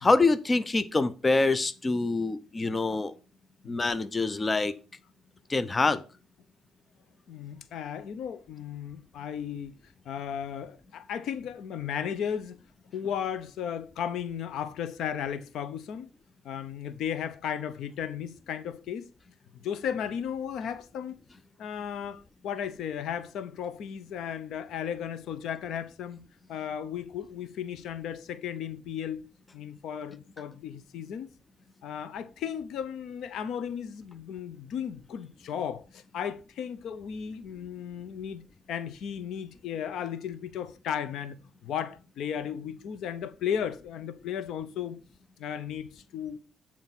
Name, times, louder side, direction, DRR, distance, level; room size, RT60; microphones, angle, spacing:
voice 1, 0.0-3.1 3.7-4.7 5.5-6.0, left 3 dB, 25° left, 0.7 m, -25 dB
voice 2, 7.3-9.7 10.1-12.6 12.9-16.1 16.4-19.1 19.6-21.2 21.6-26.2 26.5-29.2 29.5-31.3 31.8-38.4 38.7-41.4 41.6-45.0 45.4-46.4, left 8 dB, 80° left, 0.8 m, -35 dB
9.0 x 4.4 x 5.9 m
cardioid pair, 90°, 0 cm